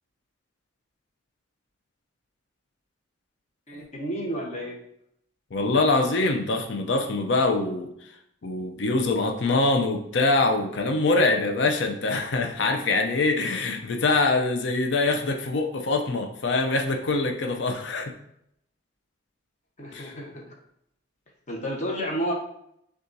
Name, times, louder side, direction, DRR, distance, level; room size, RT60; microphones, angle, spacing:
voice 1, 3.7-4.7 19.8-20.4 21.5-22.3, equal, 35° left, -2 dB, 0.9 m, -31 dB
voice 2, 5.5-7.9 8.4-18.1 19.9-20.1, left 3 dB, 65° left, 3 dB, 0.5 m, -24 dB
6.6 x 2.4 x 2.6 m, 0.74 s
head